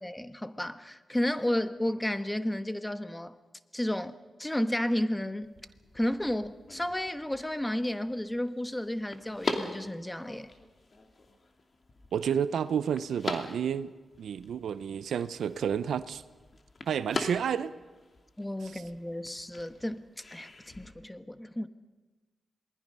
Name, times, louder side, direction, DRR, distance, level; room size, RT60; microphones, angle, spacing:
voice 1, 0.0-3.3 3.7-4.1 4.4-5.5 5.9-10.5 18.4-20.0 20.3-20.5 20.8-21.7, left 1 dB, 10° left, 1.2 m, -32 dB
sound 1, 5.4-20.9, left 2 dB, 50° left, 2.6 m, -42 dB
voice 2, 12.1-13.9 14.2-16.2 16.9-17.7 18.7-18.8, right 8 dB, 85° right, 0.6 m, -30 dB
27.5 x 20.0 x 5.5 m
cardioid pair, 55°, 0 cm